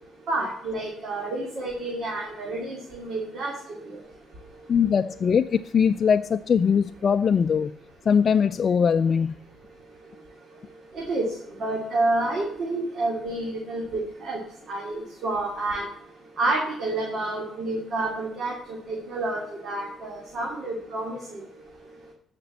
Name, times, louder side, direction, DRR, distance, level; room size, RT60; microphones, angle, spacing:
voice 1, 0.3-4.0 4.4-4.5 10.0-10.1 10.9-15.9 16.4-21.5, right 2 dB, 60° right, -1 dB, 2.6 m, -29 dB
voice 2, 4.7-7.7 8.1-9.4, left 7 dB, 50° left, 7 dB, 0.4 m, -21 dB
14.0 x 5.2 x 7.1 m, 0.73 s
cardioid pair, 90°, 0 cm